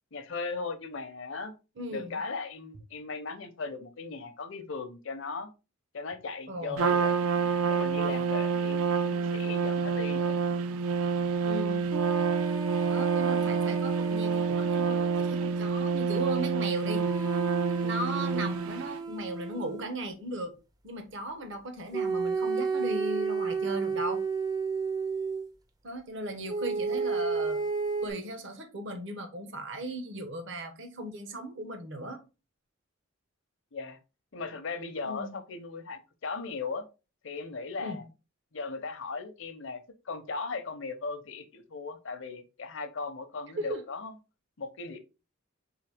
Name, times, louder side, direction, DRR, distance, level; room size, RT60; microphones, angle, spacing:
voice 1, 0.1-1.5 1.9-5.5 5.9-7.2 7.7-10.4 33.7-34.0 34.3-36.8 37.2-38.0 38.5-39.8 40.0-44.2 44.6-45.0, left 4 dB, 60° left, 0.6 m, -37 dB
voice 2, 1.8-2.2 6.5-6.8 11.4-11.9 12.9-17.1 17.8-20.5 20.8-24.2 25.8-27.6 28.0-32.2 35.0-35.4 37.8-38.0 43.6-43.8, right 1 dB, 60° right, 0.8 m, -37 dB
Trumpet, 6.8-18.9, right 5 dB, 85° right, 0.4 m, -28 dB
sound 1, 11.9-15.7 16.8-19.9 21.9-25.5 26.5-28.1, right 5 dB, 20° right, 0.4 m, -33 dB
3.9 x 3.1 x 3.4 m
head